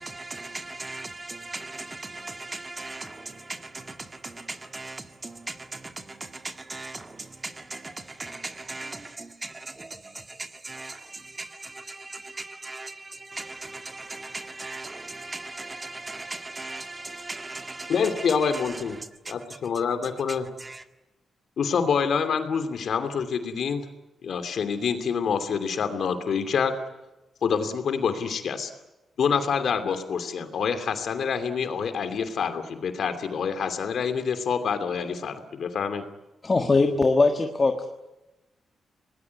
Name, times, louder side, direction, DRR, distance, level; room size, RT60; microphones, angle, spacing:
voice 1, 0.0-19.3 20.6-20.8, right 2 dB, 25° right, 2.0 m, -38 dB
voice 2, 17.9-19.0 19.3-20.5 21.6-23.8 24.2-26.7 27.4-28.7 29.2-36.0, left 6 dB, 70° left, 2.7 m, -26 dB
voice 3, 36.4-37.9, left 3 dB, 30° left, 1.6 m, -21 dB
25.0 x 19.5 x 9.6 m
cardioid pair, 100°, 0 cm